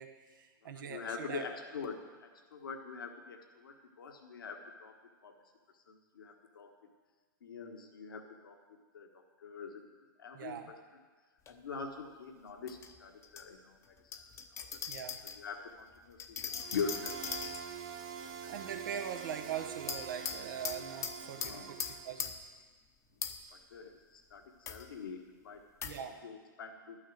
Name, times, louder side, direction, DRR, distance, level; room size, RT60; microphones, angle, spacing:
voice 1, 0.0-1.4 10.3-10.7 14.9-15.2 18.5-22.3 25.8-26.2, right 8 dB, 65° right, 6 dB, 1.2 m, -42 dB
voice 2, 0.8-5.0 5.2-5.4 5.9-6.7 7.4-8.6 8.9-9.9 10.2-10.7 11.5-13.8 14.1-14.3 14.6-14.8 15.3-17.2 18.2-18.5 21.2-21.7 23.5-25.7 26.2-27.0, left 5 dB, 80° left, 3 dB, 1.3 m, -44 dB
sound 1, 11.5-11.6 12.7-13.4 14.1-15.4 16.2-17.9 19.9-22.6 23.2-23.6 24.7-24.9 25.8-26.0, left 7 dB, 25° left, 0.8 m, -41 dB
sound 2, 16.5-22.3, right 8 dB, 40° right, 1.2 m, -45 dB
12.0 x 6.4 x 7.8 m, 1.4 s
hypercardioid pair, 115°, 11 cm